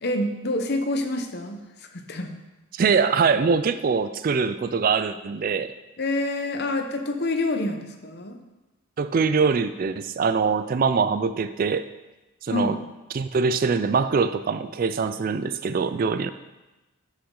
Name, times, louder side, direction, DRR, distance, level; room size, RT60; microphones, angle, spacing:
voice 1, 0.0-1.6 1.9-2.4 6.0-8.4 12.5-12.8, left 2 dB, 45° left, 5 dB, 0.8 m, -27 dB
voice 2, 2.7-5.7 9.0-11.9 12.4-12.8 13.1-16.3, right 5 dB, 40° right, 12 dB, 0.3 m, -23 dB
12.5 x 5.7 x 3.8 m, 1.1 s
head